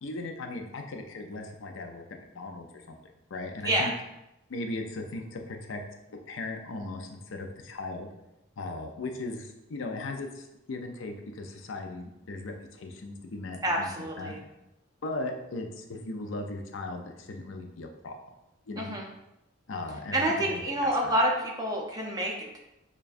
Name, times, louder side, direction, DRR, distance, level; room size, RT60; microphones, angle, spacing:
voice 1, 0.0-2.0 2.3-3.0 3.3-3.9 4.5-5.8 6.1-8.1 8.6-13.9 14.2-14.3 15.0-18.2 18.7-18.9 19.7-20.2 20.5-21.1, left 2 dB, 70° left, 3 dB, 0.5 m, -37 dB
voice 2, 13.6-14.4 18.8-19.1 20.1-22.6, right 1 dB, 20° right, -1 dB, 0.5 m, -28 dB
6.7 x 2.3 x 2.5 m, 0.90 s
head